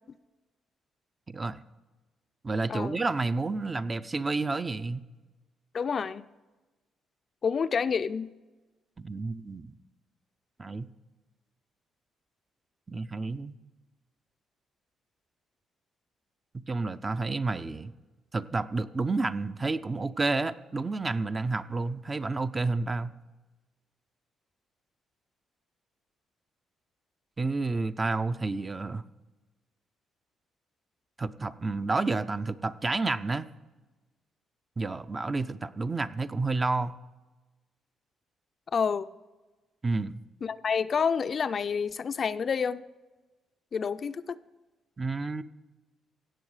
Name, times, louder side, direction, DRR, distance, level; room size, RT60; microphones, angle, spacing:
voice 1, 1.3-1.6 2.4-5.0 9.0-9.7 10.6-10.9 12.9-13.5 16.7-17.9 18.3-23.1 27.4-29.0 31.2-33.5 34.8-37.0 39.8-40.2 45.0-45.4, right 3 dB, 25° right, 12 dB, 0.5 m, -30 dB
voice 2, 2.7-3.0 5.7-6.3 7.4-8.3 38.7-39.1 40.4-42.8 43.7-44.4, left 6 dB, 45° left, 12 dB, 0.4 m, -28 dB
16.5 x 7.3 x 4.8 m, 1.2 s
cardioid pair, 90°, 0 cm